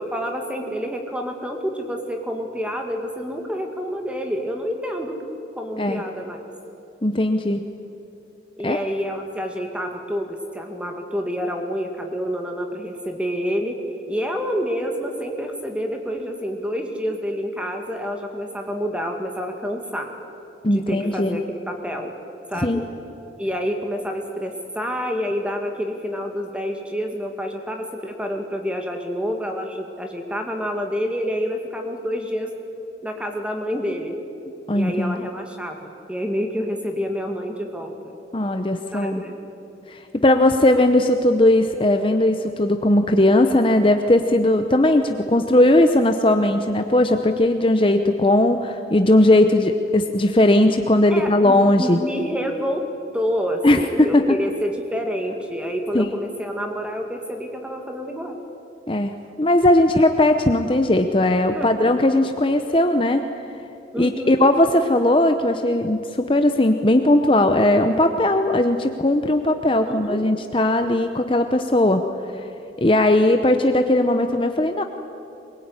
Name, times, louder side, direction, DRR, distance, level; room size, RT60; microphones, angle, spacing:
voice 1, 0.0-5.1 5.6-6.4 8.6-13.8 14.1-20.1 20.7-22.1 22.5-22.9 23.4-32.5 33.0-34.1 34.7-38.2 38.9-39.4 51.1-52.8 53.1-58.4 61.5-61.7 63.9-64.4 69.9-70.2, equal, 5° right, 3 dB, 2.2 m, -28 dB
voice 2, 7.0-7.6 8.6-8.8 20.6-21.4 22.6-22.8 34.7-35.3 38.3-39.2 39.9-52.0 53.6-54.2 55.9-56.1 58.9-63.2 64.0-72.0 72.8-74.8, left 1 dB, 30° left, 6 dB, 0.8 m, -18 dB
23.0 x 21.0 x 9.7 m, 2.9 s
head